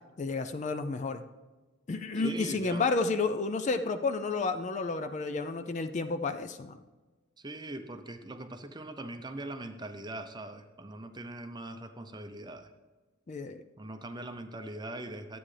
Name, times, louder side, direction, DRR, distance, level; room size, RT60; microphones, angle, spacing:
voice 1, 0.2-1.2 1.9-6.8 13.3-13.6, left 3 dB, 35° left, 8 dB, 0.4 m, -31 dB
voice 2, 2.2-2.9 7.4-12.7 13.8-15.4, right 1 dB, 20° right, 7 dB, 0.6 m, -41 dB
12.5 x 8.6 x 3.3 m, 1.2 s
head